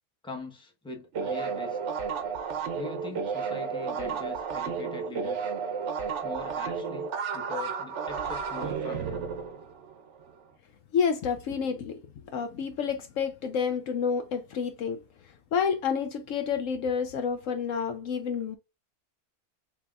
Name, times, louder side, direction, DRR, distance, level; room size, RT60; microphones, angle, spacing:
voice 1, 0.2-1.8 2.7-5.5 6.2-9.3, left 2 dB, 5° left, 0.8 m, -41 dB
sound 1, 1.1-10.3, right 6 dB, 60° right, 1.0 m, -32 dB
voice 2, 10.9-12.0 12.3-15.0 15.5-18.6, left 6 dB, 70° left, 0.9 m, -29 dB
5.9 x 2.9 x 2.4 m
omnidirectional pair, 1.5 m